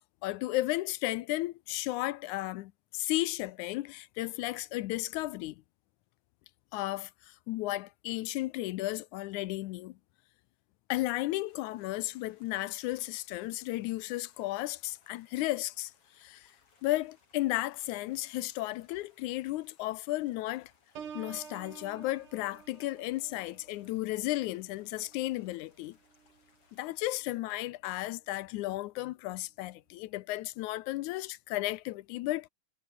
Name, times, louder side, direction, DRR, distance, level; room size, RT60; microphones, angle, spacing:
voice 1, 0.2-5.6 6.7-10.0 10.9-15.9 16.2-16.5 16.8-20.7 21.2-26.0 26.7-32.5, left 17 dB, 85° left, 2.0 m, -34 dB
sound 1, 11.5-27.2, left 4 dB, 45° left, 5.2 m, -68 dB
Piano, 21.0-26.6 27.1-27.4, right 7 dB, 80° right, 4.3 m, -51 dB
omnidirectional pair, 3.6 m